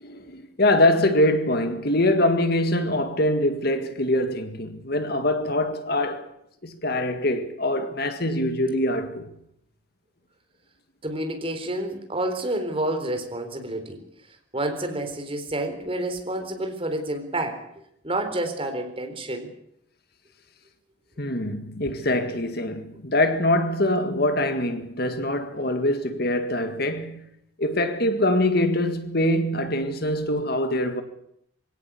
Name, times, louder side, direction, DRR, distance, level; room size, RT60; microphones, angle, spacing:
voice 1, 0.0-6.3 6.6-9.3 21.2-27.2 27.6-31.0, left 1 dB, 50° left, 1.9 m, -24 dB
voice 2, 11.0-14.0 14.5-17.6 18.0-19.5, right 1 dB, 30° right, 3.9 m, -29 dB
23.5 x 17.0 x 8.5 m
head